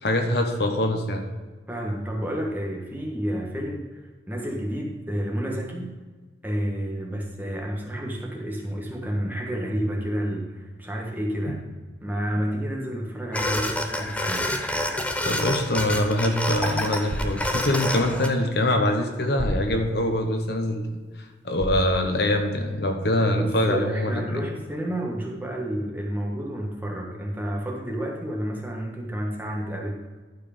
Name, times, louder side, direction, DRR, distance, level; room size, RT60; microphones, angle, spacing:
voice 1, 0.0-1.2 15.2-20.9 21.4-24.4, left 1 dB, 60° left, 5 dB, 1.0 m, -24 dB
voice 2, 1.7-4.0 4.3-5.9 6.4-11.6 12.0-14.5 23.4-30.0, equal, 10° right, -1 dB, 1.4 m, -30 dB
sound 1, 13.3-18.3, left 1 dB, 5° left, 0.7 m, -28 dB
sound 2, 15.8-22.8, equal, 85° right, 1.2 m, -37 dB
12.0 x 4.8 x 5.1 m, 1.4 s
head